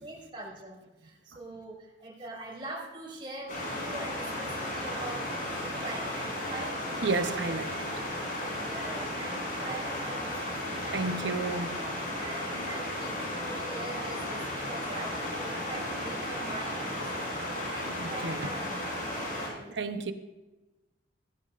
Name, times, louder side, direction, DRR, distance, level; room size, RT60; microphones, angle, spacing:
voice 1, 0.0-6.8 8.4-19.8, right 2 dB, 25° right, 5.1 m, -43 dB
sound 1, 3.5-19.5, left 1 dB, 45° left, 5.0 m, -34 dB
voice 2, 7.0-7.8 10.9-11.8 18.0-18.5 19.7-20.1, right 3 dB, 65° right, 0.8 m, -32 dB
16.0 x 15.5 x 2.5 m
head